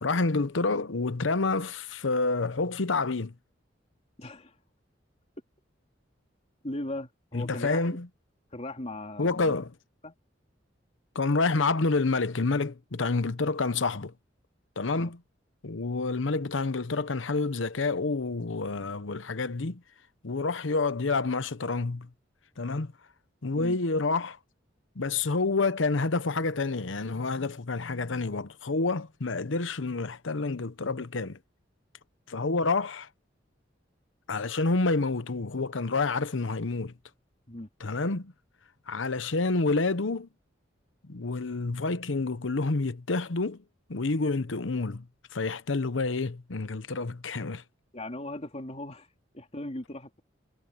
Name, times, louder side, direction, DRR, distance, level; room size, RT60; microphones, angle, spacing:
voice 1, 0.0-3.3 7.3-8.1 9.2-9.7 11.1-14.1 14.8-15.2 15.6-19.8 20.2-22.1 22.6-22.9 23.4-24.4 25.0-31.4 32.3-33.1 34.3-36.9 37.8-38.3 38.9-40.3 41.1-43.6 43.9-45.1 45.3-47.6, left 3 dB, 90° left, 0.9 m, -28 dB
voice 2, 4.2-4.5 6.6-7.8 8.5-9.5 10.0-10.1 15.0-15.1 23.5-23.8 37.5-37.7 47.9-49.1 49.3-50.2, left 1 dB, 35° left, 3.3 m, -38 dB
head